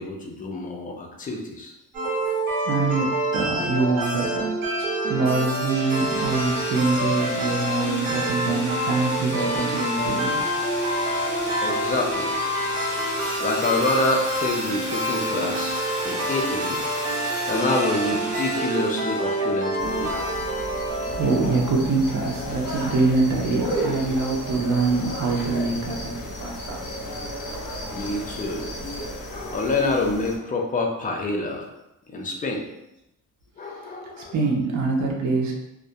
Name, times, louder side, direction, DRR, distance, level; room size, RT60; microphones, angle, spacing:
voice 1, 0.0-1.7 11.6-12.4 13.4-20.4 27.9-28.7 29.3-31.7 32.1-32.6 33.6-34.3 35.0-35.1, left 2 dB, 25° left, 1 dB, 0.4 m, -27 dB
sound 1, 1.9-21.8, right 1 dB, 80° right, 0.9 m, -27 dB
voice 2, 2.7-4.4 4.7-10.4 21.0-26.8 33.7-33.9 34.3-35.5, right 3 dB, 55° right, -1 dB, 0.6 m, -24 dB
sound 2, 5.3-19.7, equal, 20° right, 1.1 m, -35 dB
sound 3, 19.8-30.4, equal, 70° left, 0.8 m, -33 dB
2.3 x 2.1 x 2.7 m, 0.87 s
cardioid pair, 120°, 34 cm